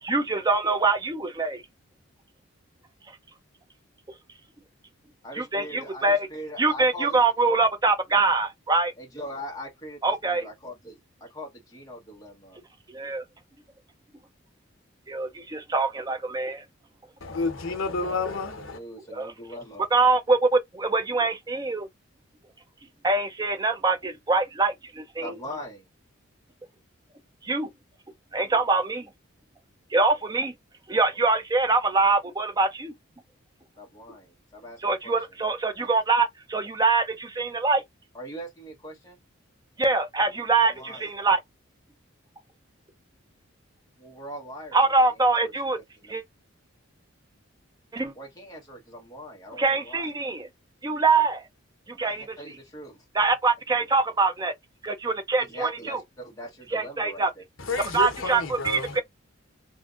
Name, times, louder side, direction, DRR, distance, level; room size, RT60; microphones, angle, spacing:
voice 1, 0.0-1.6 5.4-6.3 6.6-8.9 10.0-10.5 12.9-13.2 15.1-16.6 19.1-19.3 19.9-21.9 23.0-25.3 27.4-27.7 28.3-29.1 29.9-30.5 30.9-32.9 34.8-37.8 39.8-41.4 44.7-45.8 46.1-46.2 47.9-48.1 49.6-50.5 50.8-51.4 52.0-52.4 53.1-54.5 54.8-56.0 56.7-57.3 57.9-59.0, right 3 dB, 20° right, 0.5 m, -24 dB
voice 2, 5.2-7.2 9.0-12.6 17.9-18.2 18.6-19.9 25.2-25.9 33.8-35.2 35.8-35.9 38.1-39.2 40.6-41.1 44.0-45.5 46.0-46.1 48.1-50.1 52.1-53.0 55.4-57.4, equal, 15° left, 1.2 m, -41 dB
voice 3, 17.2-18.8 57.6-59.0, left 3 dB, 70° left, 1.0 m, -30 dB
3.6 x 2.6 x 2.4 m
head